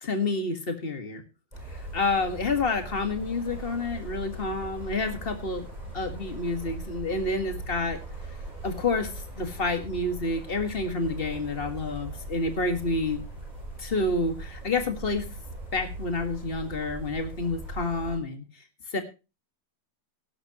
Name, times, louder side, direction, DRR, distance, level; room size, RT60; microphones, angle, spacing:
voice 1, 0.0-1.2 1.9-5.7 5.9-8.0 8.6-9.1 9.4-13.2 13.8-15.3 15.7-18.4 18.9-19.0, left 3 dB, 65° left, 7 dB, 0.5 m, -29 dB
sound 1, 1.5-18.2, right 2 dB, 10° right, 6.2 m, -40 dB
17.5 x 12.0 x 3.0 m, 0.30 s
omnidirectional pair, 4.2 m